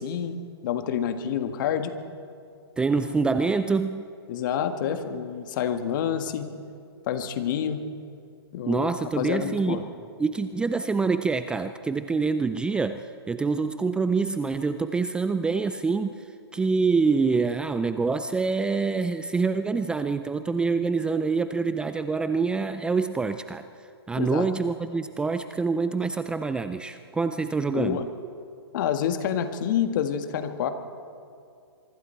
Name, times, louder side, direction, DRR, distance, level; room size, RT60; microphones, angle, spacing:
voice 1, 0.0-1.9 4.3-6.5 7.1-7.8 8.5-8.9 9.2-9.8 24.2-24.5 27.7-28.1 28.7-30.7, left 8 dB, 50° left, 8 dB, 1.7 m, -28 dB
voice 2, 2.8-4.0 8.7-9.9 10.2-23.6 24.1-28.0, right 4 dB, 5° right, 11 dB, 0.4 m, -26 dB
25.0 x 24.0 x 4.5 m, 2.4 s
hypercardioid pair, 130°, 14 cm